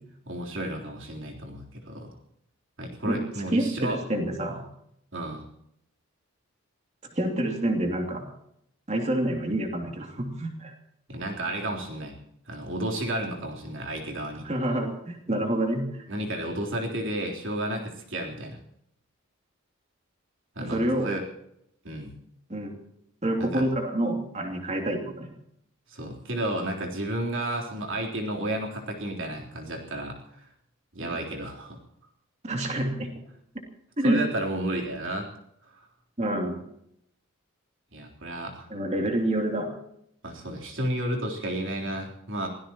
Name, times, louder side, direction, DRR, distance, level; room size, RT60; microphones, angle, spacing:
voice 1, 0.3-2.1 2.8-4.0 5.1-5.5 11.1-12.2 12.5-14.5 16.1-18.6 20.6-21.2 21.8-22.1 23.4-23.7 25.9-30.5 30.9-31.8 34.0-35.3 35.7-35.8 37.9-38.7 40.2-42.5, right 1 dB, 60° right, 0 dB, 3.7 m, -32 dB
voice 2, 3.5-4.6 7.1-8.2 8.9-10.7 14.4-16.0 20.6-21.1 22.5-22.8 23.2-25.3 31.0-31.2 32.4-33.1 34.0-34.2 36.2-36.6 38.7-39.7, right 1 dB, 30° right, 2 dB, 2.8 m, -27 dB
26.0 x 17.0 x 3.0 m, 0.75 s
head